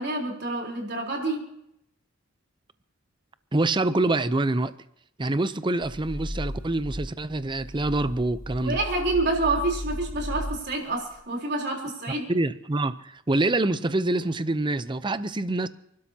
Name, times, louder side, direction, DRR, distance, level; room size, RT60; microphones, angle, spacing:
voice 1, 0.0-1.4 8.6-12.3, right 2 dB, 55° right, 3.8 m, -28 dB
voice 2, 3.5-4.7 5.2-8.8 12.3-15.7, right 2 dB, 25° right, 0.6 m, -26 dB
sound 1, 5.8-11.2, equal, 50° left, 3.3 m, -36 dB
30.0 x 12.5 x 2.9 m
head